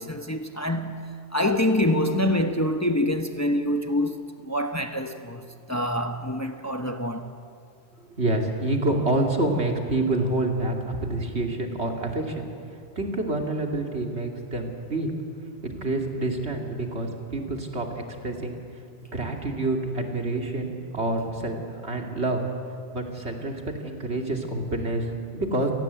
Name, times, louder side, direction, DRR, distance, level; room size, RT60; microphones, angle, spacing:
voice 1, 0.0-7.3, left 1 dB, 15° left, 1.1 m, -26 dB
voice 2, 8.0-12.5 13.0-15.1 15.6-18.6 19.1-22.4 22.9-25.7, right 2 dB, 75° right, 3.0 m, -27 dB
28.5 x 19.0 x 8.3 m
omnidirectional pair, 1.1 m